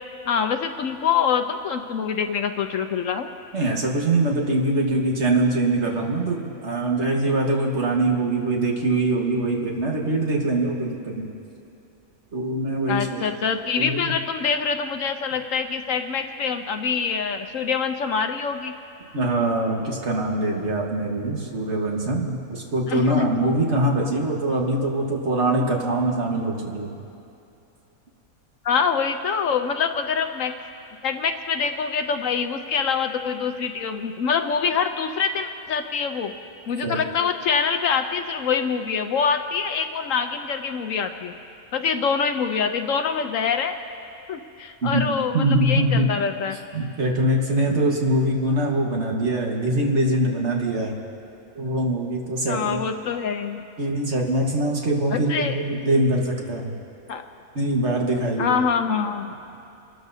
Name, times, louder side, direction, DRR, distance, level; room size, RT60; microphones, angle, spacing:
voice 1, 0.3-3.3 12.9-18.7 22.9-23.4 28.6-30.5 31.0-36.3 36.7-41.3 41.7-43.7 44.3-46.6 52.5-53.6 55.1-55.6 57.1-57.2 58.4-59.3, left 6 dB, 65° left, 7 dB, 1.0 m, -25 dB
voice 2, 3.5-11.3 12.3-13.2 13.8-14.1 19.1-27.0 36.8-37.0 44.8-45.1 45.3-46.1 46.7-51.0 51.6-52.8 53.8-56.7 57.6-58.6, right 1 dB, 50° right, 0 dB, 1.8 m, -23 dB
29.5 x 13.0 x 2.7 m, 2.7 s
omnidirectional pair, 1.5 m